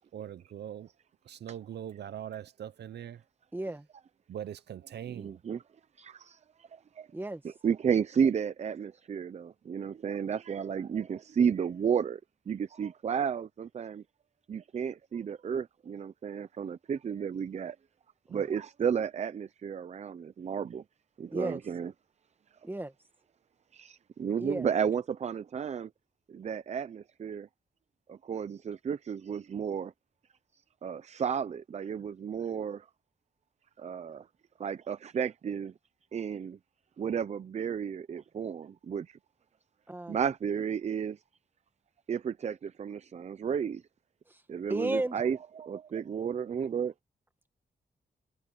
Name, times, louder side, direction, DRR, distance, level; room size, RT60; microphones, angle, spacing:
voice 1, 0.1-0.9 1.3-3.2 4.3-5.4, right 10 dB, 85° right, 0.7 m, -41 dB
voice 2, 3.5-3.9 7.1-7.4 18.3-18.5 21.3-21.6 22.6-22.9 24.4-24.7 39.9-40.2 44.3-44.4 44.7-45.2, right 1 dB, 10° right, 1.8 m, -34 dB
voice 3, 5.1-5.6 6.0-6.7 7.0-7.1 7.4-12.2 12.5-14.0 14.5-17.8 18.3-20.8 21.2-21.9 23.7-25.9 26.3-27.5 28.1-29.9 30.8-32.8 33.8-34.2 34.6-35.7 36.1-36.6 37.0-39.2 40.1-41.2 42.1-43.8 44.5-46.9, right 7 dB, 40° right, 0.5 m, -32 dB
wide cardioid pair, 160°, 17 cm